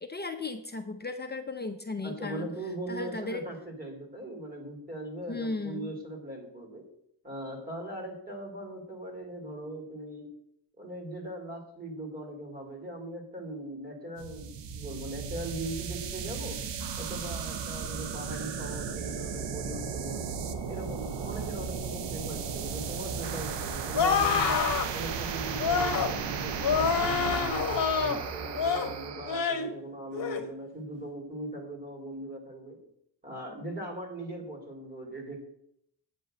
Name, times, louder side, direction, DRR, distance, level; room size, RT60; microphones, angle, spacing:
voice 1, 0.0-2.5 2.9-3.4 5.3-5.9, left 3 dB, 25° left, 5 dB, 0.7 m, -36 dB
voice 2, 2.0-6.9 7.2-10.3 10.8-16.6 17.0-20.3 20.7-24.6 24.9-27.5 28.0-32.8 33.2-35.4, right 1 dB, 20° right, 1 dB, 3.0 m, -40 dB
sound 1, 14.2-29.5, right 6 dB, 85° right, 1.0 m, -35 dB
sound 2, 23.9-24.9 25.6-26.1 26.6-28.2 28.6-28.9 29.3-29.7 30.1-30.4, left 6 dB, 50° left, 1.3 m, -27 dB
9.0 x 5.3 x 7.7 m, 0.73 s
wide cardioid pair, 125°, 42 cm